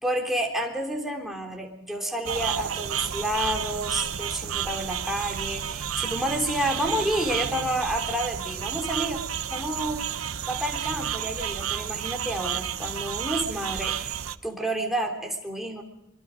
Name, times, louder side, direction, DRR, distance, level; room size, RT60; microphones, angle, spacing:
voice 1, 0.0-9.2 9.5-10.0 10.5-15.8, right 1 dB, ahead, 1 dB, 3.5 m, -30 dB
sound 1, 2.2-14.4, right 9 dB, 75° right, 0.8 m, -31 dB
24.5 x 24.0 x 5.2 m, 0.88 s
head